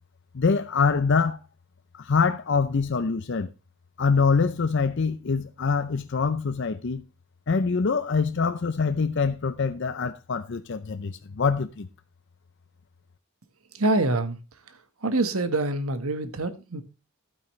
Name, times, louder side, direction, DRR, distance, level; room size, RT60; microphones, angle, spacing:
voice 1, 0.3-1.4 2.0-3.5 4.0-7.0 7.5-11.9, left 5 dB, 55° left, 0.6 m, -24 dB
voice 2, 13.7-14.4 15.0-16.8, right 2 dB, 85° right, 1.4 m, -25 dB
12.0 x 9.0 x 3.2 m
head